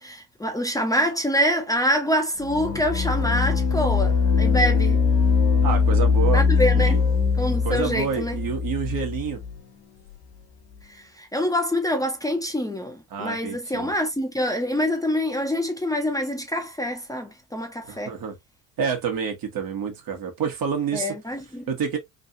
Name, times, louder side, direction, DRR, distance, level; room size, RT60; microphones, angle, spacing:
voice 1, 0.0-5.0 6.3-7.0 7.4-8.4 10.8-18.2 20.9-21.7, equal, 10° left, 0.9 m, -25 dB
sound 1, 2.4-9.6, left 5 dB, 55° left, 1.3 m, -21 dB
voice 2, 5.6-6.4 6.7-7.0 7.6-9.4 13.1-13.9 17.9-18.3 18.8-21.1 21.7-22.0, right 6 dB, 50° right, 1.3 m, -28 dB
3.2 x 2.7 x 2.6 m
hypercardioid pair, 65°, 43 cm